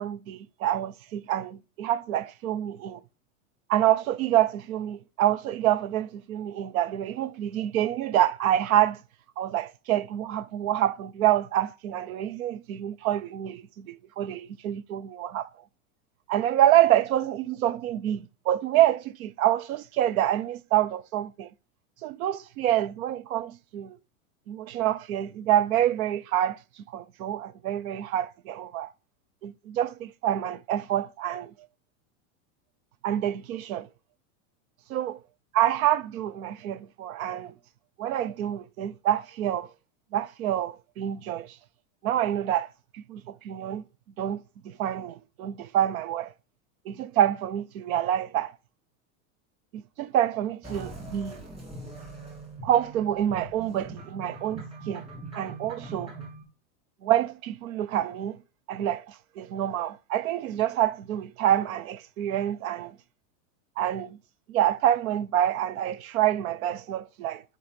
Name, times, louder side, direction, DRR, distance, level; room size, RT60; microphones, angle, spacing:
voice 1, 0.0-3.0 3.7-9.0 9.4-15.5 16.3-21.5 22.0-24.0 24.5-26.6 26.9-28.9 29.4-31.5 33.0-33.9 34.9-35.1 35.5-37.5 38.0-39.7 40.1-41.5 42.0-42.7 42.9-43.8 44.2-46.3 46.9-48.5 49.7-51.4 52.6-55.1 55.3-56.1 57.0-58.4 58.7-63.0 63.8-64.2 64.5-67.4, right 12 dB, 80° right, 0.7 m, -27 dB
sound 1, 50.6-56.4, right 2 dB, 15° right, 3.1 m, -42 dB
11.0 x 4.8 x 5.2 m
supercardioid pair, 165°, 41 cm